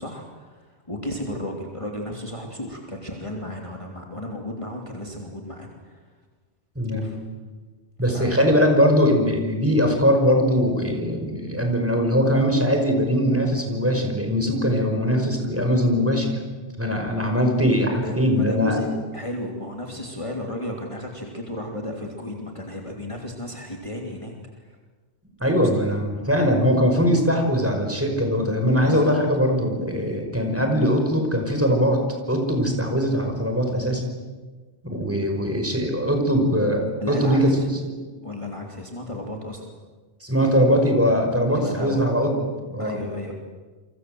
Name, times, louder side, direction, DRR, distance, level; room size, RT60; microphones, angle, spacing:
voice 1, 0.0-6.1 6.9-7.2 8.1-8.4 17.9-24.8 25.4-25.7 28.8-29.2 37.0-37.7 38.2-39.7 41.5-42.1 42.8-43.3, left 1 dB, 25° left, 0 dB, 3.1 m, -33 dB
voice 2, 6.8-7.1 8.0-16.3 16.8-18.8 25.4-32.0 32.3-34.0 34.8-37.6 37.8-37.9 40.2-42.3 42.7-43.0, equal, 10° right, 3 dB, 5.5 m, -21 dB
30.0 x 24.5 x 7.9 m, 1.3 s
omnidirectional pair, 1.2 m